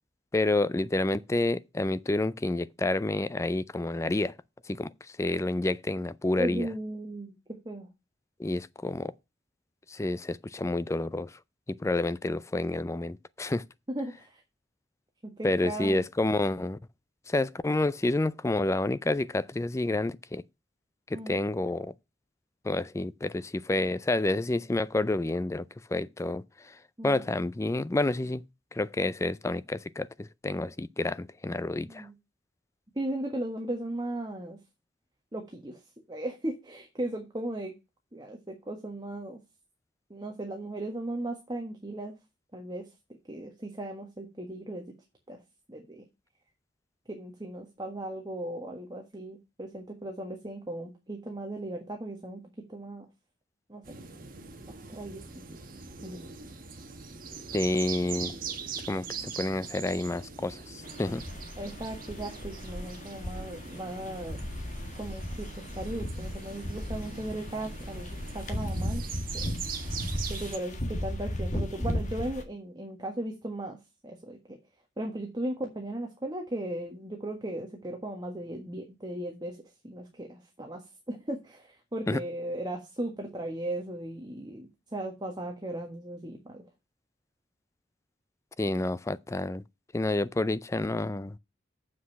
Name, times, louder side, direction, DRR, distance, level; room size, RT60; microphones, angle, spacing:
voice 1, 0.3-4.3 4.7-6.7 8.4-9.1 9.9-11.4 11.7-13.6 15.4-16.8 17.3-20.4 21.1-21.9 22.6-26.8 27.0-28.4 28.7-32.1 57.5-58.3 58.9-61.2 82.1-82.2 88.6-89.6 89.9-91.4, left 2 dB, 15° left, 0.4 m, -29 dB
voice 2, 6.4-7.3 7.6-7.9 13.9-14.4 15.4-16.0 21.1-21.4 27.0-27.2 31.9-32.1 32.9-34.6 35.3-35.8 36.1-37.7 38.1-39.4 40.1-42.1 42.5-42.8 43.3-44.8 45.3-45.4 45.7-46.1 47.1-52.4 52.7-53.1 53.7-54.0 54.7-55.2 56.0-56.2 61.6-64.4 64.9-69.0 69.3-69.5 70.3-73.8 74.0-74.6 75.0-79.6 79.8-80.8 81.1-86.6, right 1 dB, 20° right, 1.5 m, -37 dB
sound 1, 53.8-70.6, right 5 dB, 50° right, 1.3 m, -42 dB
sound 2, 60.8-72.4, equal, 40° left, 1.7 m, -36 dB
7.5 x 6.3 x 5.6 m
head